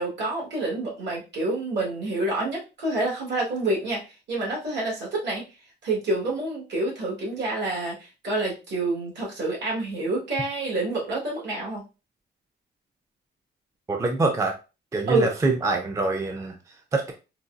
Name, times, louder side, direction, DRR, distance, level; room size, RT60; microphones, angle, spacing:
voice 1, 0.0-5.4 5.8-11.8 15.1-15.3, right 2 dB, 75° right, -3 dB, 1.6 m, -28 dB
voice 2, 13.9-14.5 14.9-17.1, right 3 dB, 15° right, 3 dB, 0.4 m, -25 dB
3.8 x 2.2 x 2.5 m, 0.30 s
wide cardioid pair, 155°, 18 cm